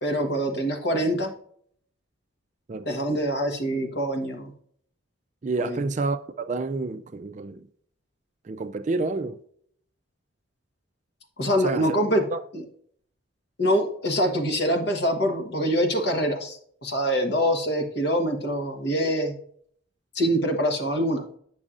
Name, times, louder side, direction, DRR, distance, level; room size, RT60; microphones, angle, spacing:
voice 1, 0.0-1.3 2.8-4.5 5.6-5.8 11.4-12.3 12.5-12.6 13.6-19.4 20.1-21.3, equal, 55° left, 1.2 m, -25 dB
voice 2, 5.4-7.7 8.5-9.4 11.6-11.9 12.3-12.4, right 3 dB, 35° right, 0.3 m, -29 dB
8.5 x 6.2 x 2.5 m
head